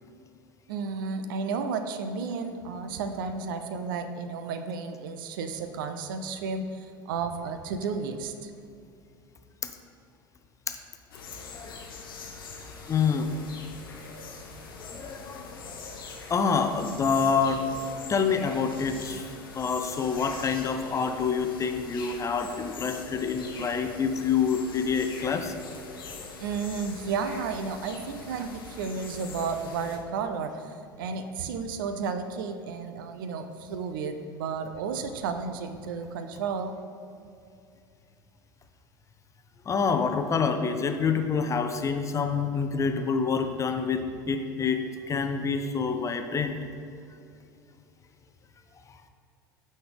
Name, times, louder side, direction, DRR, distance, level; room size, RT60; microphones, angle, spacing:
voice 1, 0.7-8.5 26.4-36.7, right 5 dB, 70° right, 8 dB, 0.5 m, -32 dB
sound 1, 11.1-30.0, left 4 dB, 80° left, 0.8 m, -43 dB
voice 2, 11.5-11.9 12.9-13.3 14.8-15.8 16.3-19.3 19.5-25.5 31.2-31.3 39.7-44.8 45.1-46.6, left 5 dB, 25° left, 7 dB, 0.6 m, -27 dB
9.2 x 4.2 x 3.5 m, 2.5 s
hypercardioid pair, 75°, 12 cm